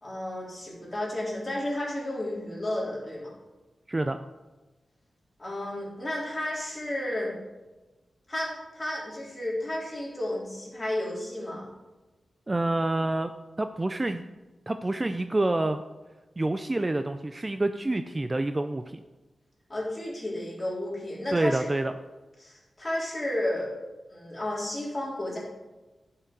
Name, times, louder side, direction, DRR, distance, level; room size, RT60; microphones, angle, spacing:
voice 1, 0.0-3.3 5.4-7.3 8.3-11.6 19.7-21.7 22.4-23.7 24.1-25.4, left 1 dB, 25° left, -5 dB, 3.7 m, -32 dB
voice 2, 3.9-4.2 12.5-13.3 13.6-14.3 14.7-15.8 16.4-19.0 21.3-21.9, right 2 dB, 25° right, 9 dB, 0.4 m, -27 dB
11.0 x 5.8 x 5.3 m, 1.1 s
wide cardioid pair, 105°, 0 cm